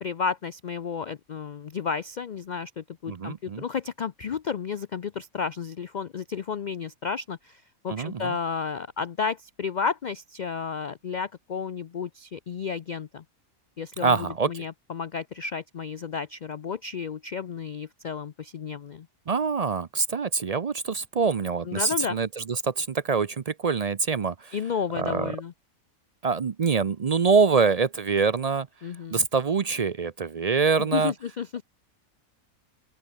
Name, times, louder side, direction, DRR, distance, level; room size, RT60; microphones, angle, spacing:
voice 1, 0.0-13.2 13.8-19.1 21.7-22.2 24.5-25.5 28.8-29.2 30.9-31.6, left 6 dB, 75° left, 0.4 m, -32 dB
voice 2, 3.1-3.6 7.9-8.4 14.0-14.6 19.3-24.6 24.9-25.4 26.2-28.7 29.1-31.1, right 5 dB, 50° right, 0.4 m, -25 dB
open air
omnidirectional pair, 1.5 m